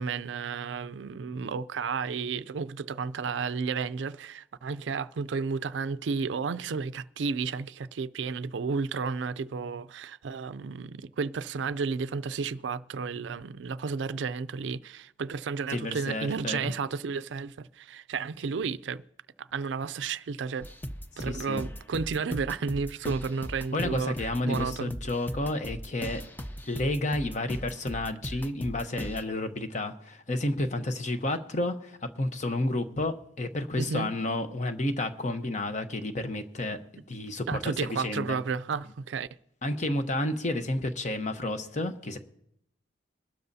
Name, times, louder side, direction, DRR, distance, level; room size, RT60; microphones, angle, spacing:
voice 1, 0.0-19.0 19.4-20.7 21.2-25.0 33.8-34.1 37.5-39.3, right 5 dB, 80° right, 0.4 m, -32 dB
voice 2, 15.7-16.7 21.2-21.6 23.7-26.2 26.6-36.8 37.1-38.4 39.6-42.2, left 1 dB, 40° left, 0.9 m, -31 dB
sound 1, 20.6-29.2, equal, 10° left, 0.5 m, -39 dB
22.0 x 12.5 x 2.7 m
head